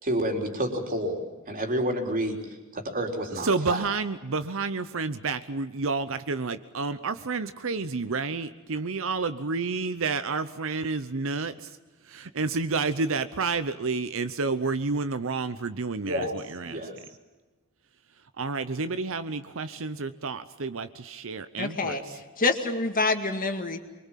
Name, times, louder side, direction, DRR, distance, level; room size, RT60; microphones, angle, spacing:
voice 1, 0.0-3.8 16.0-16.4 16.6-17.0, right 1 dB, 40° right, 3 dB, 3.9 m, -29 dB
voice 2, 3.4-11.7 12.1-16.8 18.4-22.0, right 4 dB, 65° right, 12 dB, 0.8 m, -30 dB
voice 3, 21.6-23.8, left 3 dB, 40° left, 6 dB, 2.0 m, -27 dB
24.5 x 23.0 x 7.5 m, 1.2 s
head